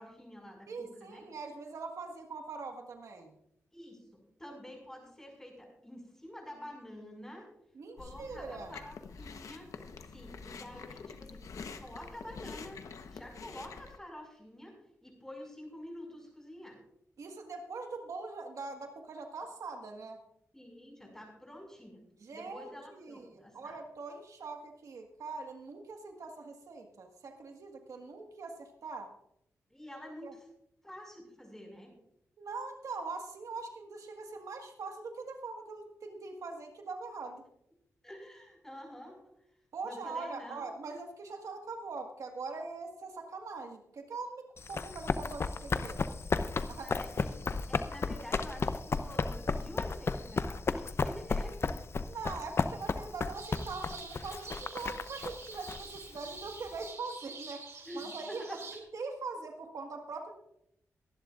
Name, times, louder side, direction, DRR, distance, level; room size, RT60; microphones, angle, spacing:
voice 1, 0.0-1.2 3.7-7.5 7.9-9.7 10.1-12.8 13.1-14.7 15.0-16.8 20.5-22.0 22.3-23.8 29.7-30.5 30.8-31.9 38.0-39.3 39.8-40.7 46.8-47.4 47.7-51.6 57.9-58.6, equal, 10° left, 1 dB, 5.5 m, -48 dB
voice 2, 0.7-3.3 7.7-8.8 17.2-20.2 22.2-29.1 30.2-30.3 32.4-37.4 39.7-44.4 44.7-46.2 46.7-47.0 52.1-58.4 58.7-60.3, right 4 dB, 75° right, 3 dB, 1.6 m, -42 dB
Chewing mastication, 8.0-14.0, left 5 dB, 75° left, 1.0 m, -47 dB
Run, 44.6-56.8, left 4 dB, 50° left, 0.7 m, -34 dB
sound 1, 53.3-58.8, right 4 dB, 55° right, 2.9 m, -47 dB
22.5 x 11.0 x 2.5 m, 0.77 s
cardioid pair, 85°, 6 cm